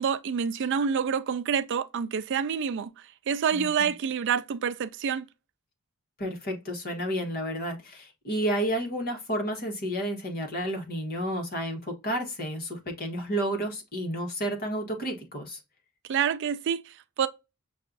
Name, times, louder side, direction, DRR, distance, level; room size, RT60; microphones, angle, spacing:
voice 1, 0.0-2.9 3.3-5.3 16.1-17.3, right 7 dB, 55° right, 0.4 m, -27 dB
voice 2, 3.5-3.9 6.2-15.6, right 1 dB, 45° left, 1.3 m, -31 dB
6.3 x 2.4 x 2.5 m
head